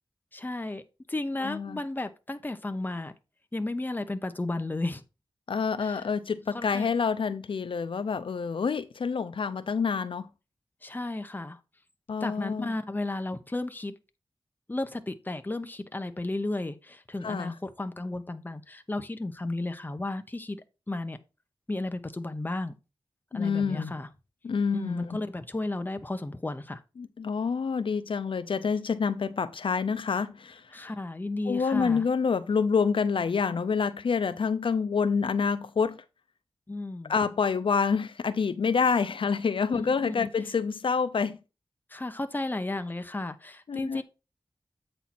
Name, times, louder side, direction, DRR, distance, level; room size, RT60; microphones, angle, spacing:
voice 1, 0.3-0.8 1.1-3.1 3.5-5.0 5.8-6.0 6.5-6.9 10.8-11.6 12.2-14.0 14.7-21.2 21.7-22.7 23.3-24.1 24.7-26.8 30.7-32.0 36.7-37.1 39.7-40.3 41.9-44.0, left 2 dB, 20° left, 0.8 m, -33 dB
voice 2, 1.4-1.8 5.5-10.3 12.1-12.8 17.2-17.5 23.3-23.9 24.4-25.0 27.0-30.6 31.5-36.0 37.1-41.4 43.7-44.0, left 5 dB, 70° left, 0.4 m, -27 dB
8.2 x 4.4 x 4.2 m
wide cardioid pair, 95°, 9 cm